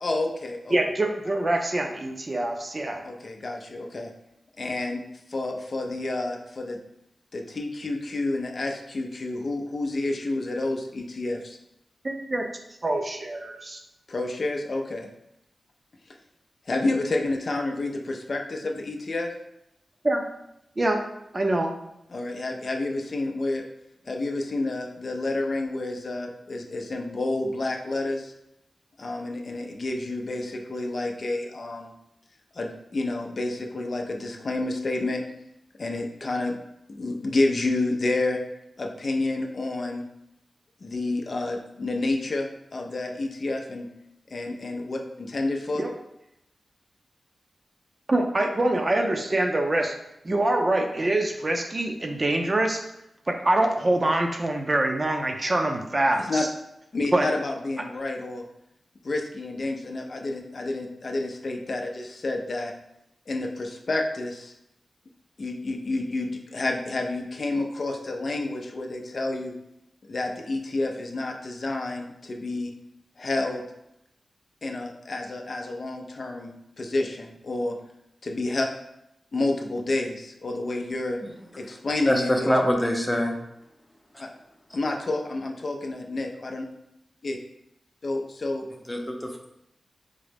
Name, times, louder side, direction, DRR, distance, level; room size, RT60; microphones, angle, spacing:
voice 1, 0.0-0.8 3.0-4.1 4.6-5.0 5.3-6.8 7.3-11.6 14.1-15.1 16.7-19.3 22.1-23.6 24.1-28.3 29.0-31.9 32.5-35.2 35.8-36.6 36.9-38.4 38.8-40.0 40.8-43.9 44.3-45.9 56.2-56.4 56.9-58.4 59.0-62.7 63.3-64.5 65.4-69.5 70.1-72.7 73.2-73.7 74.6-77.8 78.2-78.7 79.3-81.2 81.6-82.5 84.2-84.3 84.7-86.7 87.2-87.4 88.0-88.7, left 2 dB, 60° left, 2 dB, 0.4 m, -29 dB
voice 2, 0.7-3.0 12.0-12.5 12.8-13.8 20.0-20.3 20.8-21.1 21.3-21.8 45.8-45.9 48.1-50.0 50.2-52.8 53.3-56.5 57.1-57.3, right 1 dB, 40° right, 3 dB, 0.5 m, -25 dB
voice 3, 82.1-83.3 88.9-89.5, equal, 15° left, 2 dB, 0.6 m, -24 dB
3.7 x 2.0 x 3.3 m, 0.83 s
cardioid pair, 50°, 0 cm